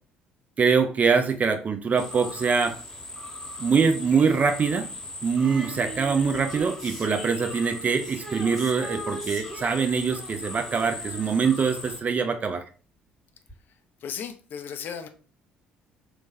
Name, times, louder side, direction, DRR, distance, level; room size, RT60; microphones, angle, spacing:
voice 1, 0.6-2.8 3.6-4.9 5.2-12.6, right 5 dB, 30° right, 0.4 m, -24 dB
sound 1, 2.0-12.0, left 2 dB, 10° left, 0.7 m, -39 dB
Female singing, 5.4-12.3 13.5-13.6, right 1 dB, 5° right, 1.3 m, -40 dB
voice 2, 14.0-15.1, left 7 dB, 45° left, 0.3 m, -35 dB
3.0 x 2.1 x 2.6 m
figure-of-eight pair, 50°, 5 cm